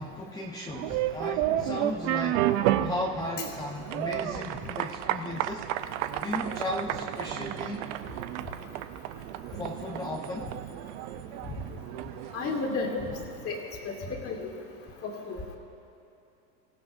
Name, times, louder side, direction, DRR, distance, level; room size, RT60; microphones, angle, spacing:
voice 1, 0.0-5.7 6.2-7.9 9.5-10.6, left 1 dB, 10° left, -3 dB, 0.9 m, -35 dB
sound 1, 0.7-13.4, right 13 dB, 45° right, 0.6 m, -32 dB
voice 2, 12.3-12.9 13.4-13.6 13.9-14.5 15.0-15.4, left 4 dB, 25° left, 0 dB, 2.4 m, -32 dB
26.5 x 15.0 x 2.6 m, 2.7 s
supercardioid pair, 130°, 49 cm